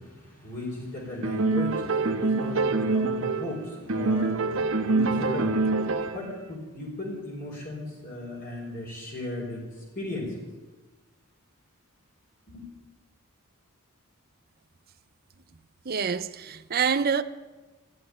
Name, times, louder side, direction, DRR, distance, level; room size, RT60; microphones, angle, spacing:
voice 1, 0.0-5.6 6.0-10.5 12.5-12.7, left 1 dB, 40° left, 4.2 m, -36 dB
sound 1, 1.2-3.6 3.9-6.3, right 3 dB, 60° right, 1.1 m, -25 dB
voice 2, 15.9-17.2, right 6 dB, 45° right, 0.6 m, -26 dB
13.5 x 11.0 x 9.8 m
head